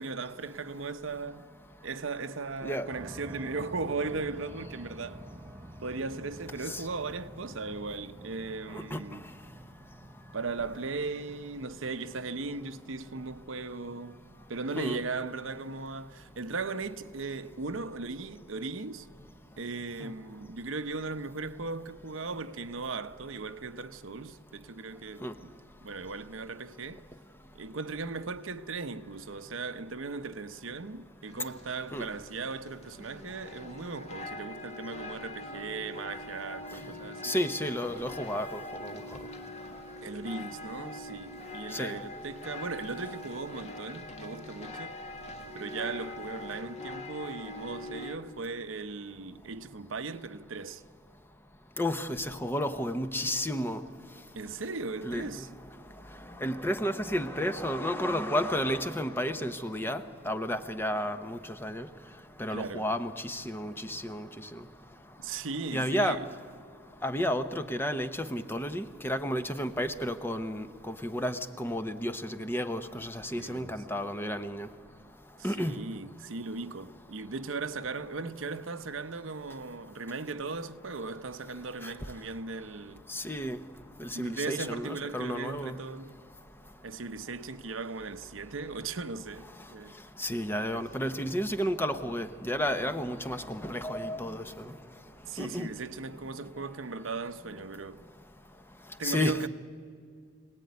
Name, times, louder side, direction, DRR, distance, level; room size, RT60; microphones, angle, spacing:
voice 1, 0.0-1.5 1.8-5.2 5.8-9.2 10.3-14.2 14.5-19.1 19.6-25.5 25.8-27.0 27.5-37.4 40.0-45.0 45.5-50.8 54.3-55.5 62.5-62.9 65.2-66.2 73.4-73.8 75.4-83.1 84.1-86.1 86.8-90.0 90.5-91.3 95.3-98.0 99.0-99.5, right 4 dB, 85° right, 0.9 m, -37 dB
sound 1, 2.9-22.7, right 1 dB, 20° right, 0.8 m, -51 dB
sound 2, 31.2-48.2, left 2 dB, 35° left, 1.7 m, -43 dB
voice 2, 37.2-38.9 41.7-41.9 51.8-53.8 55.0-55.2 56.4-61.9 62.4-64.3 65.7-66.2 67.0-74.7 75.4-75.8 83.1-83.6 84.0-85.7 90.2-94.4 95.4-95.7 99.0-99.5, equal, 10° left, 0.9 m, -32 dB
25.5 x 18.5 x 9.5 m
head